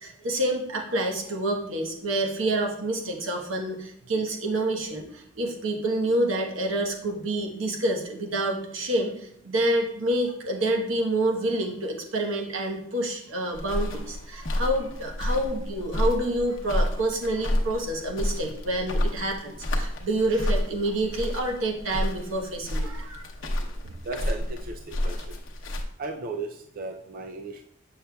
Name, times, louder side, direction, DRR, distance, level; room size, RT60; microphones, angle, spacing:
voice 1, 0.0-23.3 23.8-24.0, right 1 dB, 85° right, 1 dB, 1.1 m, -28 dB
sound 1, 13.5-25.8, left 1 dB, 75° left, 0.8 m, -30 dB
voice 2, 24.0-25.4 26.0-27.6, right 3 dB, 45° right, 4 dB, 0.4 m, -36 dB
6.7 x 6.4 x 2.3 m, 0.75 s
head